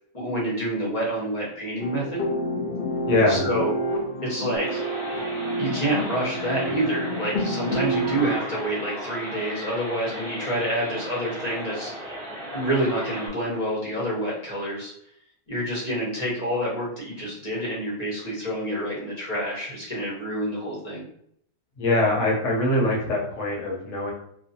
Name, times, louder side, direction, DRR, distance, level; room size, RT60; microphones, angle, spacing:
voice 1, 0.1-2.2 3.3-3.7 4.2-4.8 5.6-11.9 12.5-14.9 15.5-21.0, right 1 dB, 35° left, -6 dB, 0.8 m, -28 dB
sound 1, 1.8-8.3, equal, 85° left, 0.5 m, -28 dB
voice 2, 3.1-3.5 21.8-24.1, left 2 dB, 65° left, -2 dB, 1.0 m, -23 dB
sound 2, 4.6-13.3, equal, 5° left, 0.5 m, -36 dB
2.5 x 2.3 x 2.6 m, 0.70 s
omnidirectional pair, 1.5 m